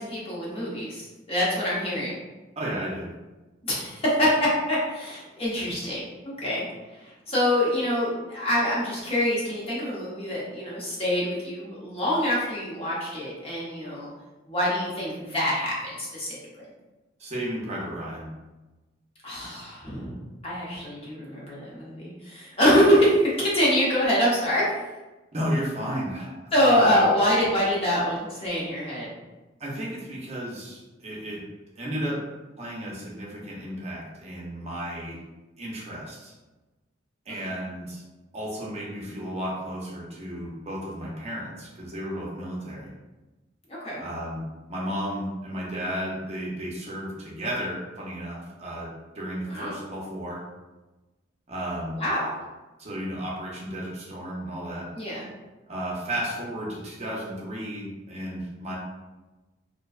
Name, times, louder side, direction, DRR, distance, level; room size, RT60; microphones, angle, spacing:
voice 1, 0.0-2.1 3.7-6.7 7.0-14.1 14.5-16.4 19.2-20.2 20.4-24.7 26.5-29.1 37.3-37.5 43.7-44.0 49.5-49.8 52.0-52.3 54.9-55.2, equal, 30° left, -7 dB, 0.8 m, -25 dB
voice 2, 2.6-3.1 17.2-18.3 25.3-26.9 29.6-31.4 31.8-32.2 32.6-35.2 35.6-36.3 37.3-38.0 38.3-42.9 44.0-44.4 44.7-50.4 51.5-52.0 52.8-54.9 55.7-58.8, equal, 35° right, -5 dB, 0.6 m, -33 dB
2.5 x 2.2 x 2.3 m, 1.1 s
head